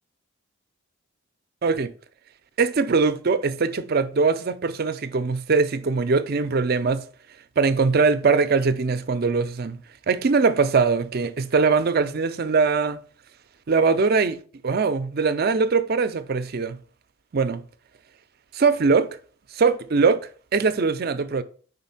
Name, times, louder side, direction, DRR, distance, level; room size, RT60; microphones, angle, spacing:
voice 1, 1.6-1.9 2.6-7.0 7.6-9.8 10.1-13.0 13.7-14.4 14.6-16.8 17.3-17.6 18.5-19.2 19.5-21.4, right 4 dB, 45° right, 0.4 m, -21 dB
5.2 x 4.0 x 5.6 m
head